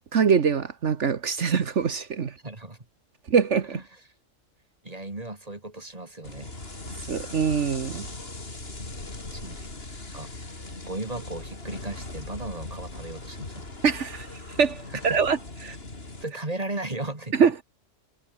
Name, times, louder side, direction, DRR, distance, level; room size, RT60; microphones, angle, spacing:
voice 1, 0.1-2.3 3.3-3.8 7.1-8.1 13.8-14.3 14.6-15.4 15.6-15.8 17.4-17.6, right 6 dB, 65° right, 1.6 m, -23 dB
voice 2, 2.4-2.8 3.7-4.0 4.8-6.6 9.3-9.7 10.1-10.3 10.9-13.7 14.9-15.2 16.2-17.4, right 2 dB, 30° right, 2.7 m, -36 dB
sound 1, 6.2-16.2, left 2 dB, 50° left, 3.8 m, -39 dB
omnidirectional pair, 1.3 m